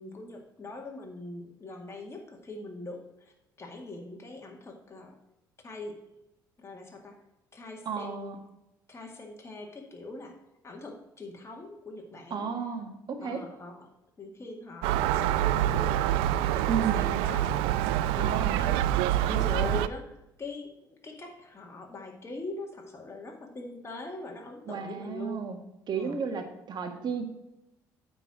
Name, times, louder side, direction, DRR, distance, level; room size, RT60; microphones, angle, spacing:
voice 1, 0.0-3.3 3.6-5.2 5.6-6.0 6.6-7.2 7.5-8.3 8.9-10.4 10.6-12.5 13.2-13.8 14.2-25.4 25.9-26.2, left 2 dB, 30° left, 1 dB, 2.1 m, -42 dB
voice 2, 7.9-8.4 12.3-13.4 16.7-17.1 18.2-18.6 24.7-25.6 25.9-27.3, right 6 dB, 50° right, 5 dB, 1.8 m, -33 dB
Gull seagull, 14.8-19.9, right 12 dB, 80° right, 0.4 m, -26 dB
9.0 x 4.5 x 6.2 m, 0.90 s
hypercardioid pair, 60°, 9 cm